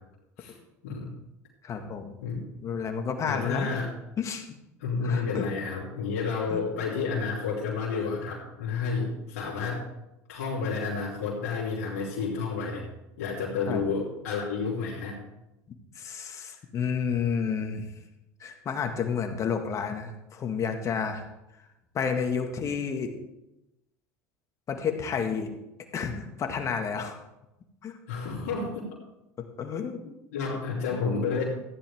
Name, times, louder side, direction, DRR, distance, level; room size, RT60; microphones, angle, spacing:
voice 1, 1.6-2.2 2.6-3.8 4.2-4.5 5.0-5.5 6.5-6.6 13.7-13.8 16.0-17.9 18.4-21.3 21.9-23.1 24.7-25.5 25.9-27.2 27.8-28.0 29.4-30.0 30.9-31.0, left 6 dB, 40° left, 5 dB, 1.9 m, -30 dB
voice 2, 3.2-3.9 4.8-9.9 10.3-12.8 13.2-15.2 28.1-28.9 30.0-31.4, left 4 dB, 85° left, -6 dB, 3.1 m, -30 dB
14.5 x 10.0 x 3.7 m, 0.93 s
supercardioid pair, 90°, 8 cm